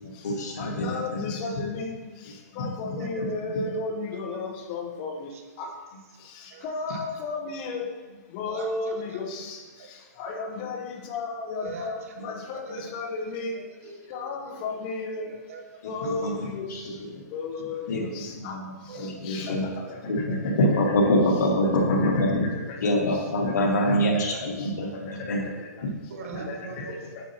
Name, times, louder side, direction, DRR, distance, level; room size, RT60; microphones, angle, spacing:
voice 1, 0.0-1.3 2.5-2.9 16.0-16.8 17.1-17.2 17.9-18.0 18.4-18.6 18.9-19.6 20.1-22.5 22.8-25.4, left 1 dB, 70° left, -1 dB, 1.9 m, -25 dB
voice 2, 0.6-1.9 2.6-5.3 5.6-5.7 6.6-7.8 8.3-9.6 10.2-13.5 14.1-15.3 15.8-16.6 17.3-18.5 19.3-19.5 20.8-20.9 22.0-22.1 22.7-22.8 23.6-23.7 24.3-24.4 26.5-26.8 27.1-27.2, left 3 dB, 30° left, 2 dB, 1.1 m, -33 dB
voice 3, 11.6-12.1 12.5-12.9 13.5-14.5 15.5-15.8 18.9-19.2 20.3-20.4 26.1-27.0, right 5 dB, 50° right, 3 dB, 1.2 m, -42 dB
8.9 x 7.0 x 3.0 m, 1.3 s
hypercardioid pair, 160°, 9 cm